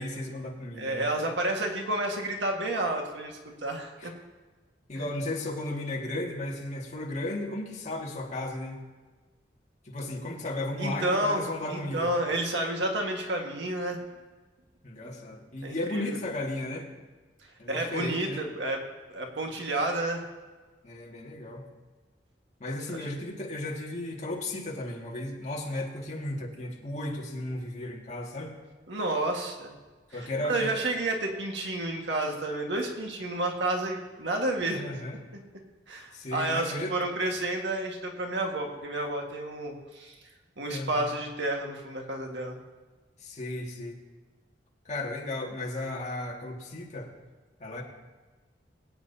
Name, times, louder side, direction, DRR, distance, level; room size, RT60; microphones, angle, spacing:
voice 1, 0.0-1.1 4.0-4.1 4.9-8.8 9.9-12.1 14.8-16.9 17.6-18.5 20.8-21.7 22.6-28.5 30.1-30.8 34.7-35.2 36.1-36.9 40.7-41.1 43.2-44.0 44.9-47.1 47.6-47.8, left 1 dB, 40° left, -2 dB, 2.1 m, -35 dB
voice 2, 0.8-4.1 5.0-5.1 10.8-14.0 15.0-15.1 15.6-16.2 17.7-18.8 19.1-20.2 28.9-29.7 30.1-34.8 35.9-40.2 40.6-42.6, right 1 dB, 80° right, 1 dB, 1.7 m, -30 dB
22.0 x 9.0 x 2.8 m, 1.3 s
head